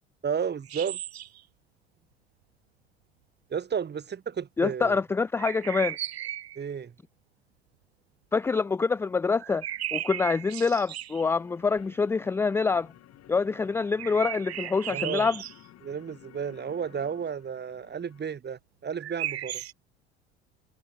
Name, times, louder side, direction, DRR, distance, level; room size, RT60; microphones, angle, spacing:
voice 1, 0.2-1.0 3.5-5.0 6.5-6.9 14.9-15.3 15.8-19.6, right 7 dB, 35° right, 3.1 m, -32 dB
sound 1, 0.7-1.4 5.4-6.6 9.4-11.3 14.0-15.6 19.0-19.7, right 12 dB, 80° right, 3.3 m, -35 dB
voice 2, 4.6-6.0 8.3-9.6 9.9-12.9 13.3-15.4, left 4 dB, 10° left, 0.3 m, -26 dB
sound 2, 11.1-18.4, left 13 dB, 50° left, 7.8 m, -54 dB
figure-of-eight pair, 60°, 31 cm